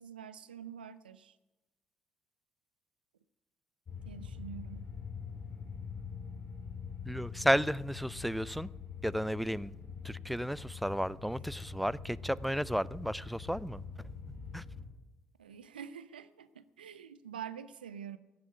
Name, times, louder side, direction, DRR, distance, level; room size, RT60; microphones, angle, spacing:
voice 1, 0.0-1.4 4.0-4.9 15.4-18.2, right 8 dB, 85° right, 14 dB, 0.5 m, -46 dB
sound 1, 3.9-14.8, left 5 dB, 45° left, 3.4 m, -44 dB
voice 2, 7.1-8.7 9.0-9.7 10.0-13.8 14.5-14.6, equal, ahead, 21 dB, 0.4 m, -33 dB
15.0 x 7.3 x 9.6 m, 1.1 s
figure-of-eight pair, 45°, 5 cm